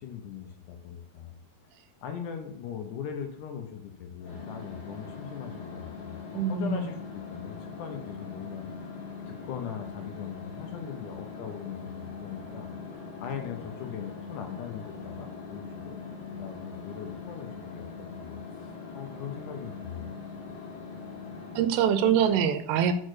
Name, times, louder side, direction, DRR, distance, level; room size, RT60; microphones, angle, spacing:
voice 1, 0.0-1.4 2.0-8.7 9.3-12.7 13.2-16.0 16.3-20.1, left 8 dB, 75° left, 5 dB, 1.9 m, -40 dB
sound 1, 4.2-21.7, left 5 dB, 50° left, 2.3 m, -41 dB
voice 2, 6.3-6.9 21.6-22.9, right 8 dB, 90° right, 11 dB, 2.7 m, -24 dB
6.1 x 4.3 x 6.4 m, 0.67 s
omnidirectional pair, 4.5 m